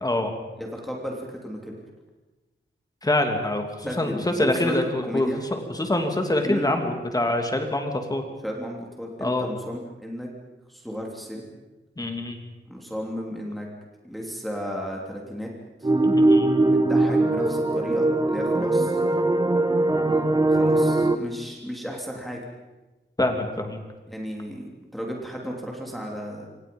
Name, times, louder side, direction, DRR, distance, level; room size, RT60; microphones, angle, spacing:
voice 1, 0.0-0.3 3.0-8.2 9.2-9.4 12.0-12.4 16.0-16.5 23.2-23.8, left 1 dB, 20° left, 4 dB, 2.9 m, -25 dB
voice 2, 0.6-1.8 3.9-4.8 5.0-5.4 6.4-6.7 8.4-10.3 10.7-11.5 12.7-13.7 14.0-15.5 15.8-15.9 16.6-19.2 20.5-22.4 24.1-24.6 24.9-26.5, equal, ahead, -1 dB, 3.2 m, -34 dB
sound 1, 15.8-21.2, right 2 dB, 20° right, 1.2 m, -21 dB
27.0 x 26.0 x 5.5 m, 1.1 s
wide cardioid pair, 180°, 21 cm